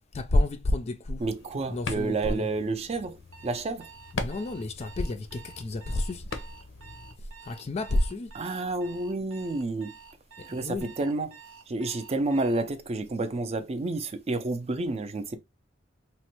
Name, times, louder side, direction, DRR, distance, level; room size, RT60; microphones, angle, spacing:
voice 1, 0.1-1.2 1.7-2.4 4.1-6.2 7.5-8.3 10.6-10.9, left 1 dB, 35° left, 0.4 m, -29 dB
sound 1, 1.2-7.1, left 3 dB, 75° left, 0.6 m, -41 dB
voice 2, 1.2-3.2 3.4-3.9 8.3-9.9 10.4-11.4 11.7-15.4, right 2 dB, 35° right, 0.4 m, -30 dB
Alarm, 3.3-12.7, right 6 dB, 75° right, 0.6 m, -50 dB
3.1 x 2.1 x 2.9 m
head